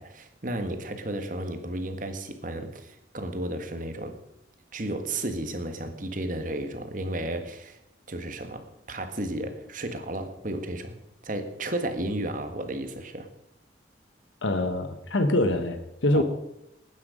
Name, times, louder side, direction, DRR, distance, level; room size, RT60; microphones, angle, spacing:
voice 1, 0.0-4.2 4.7-7.8 8.1-11.0 11.2-13.3 16.1-16.2, right 1 dB, 45° right, 8 dB, 1.6 m, -33 dB
voice 2, 14.4-16.2, left 1 dB, 85° left, 7 dB, 1.3 m, -24 dB
19.0 x 9.4 x 5.1 m, 0.84 s
head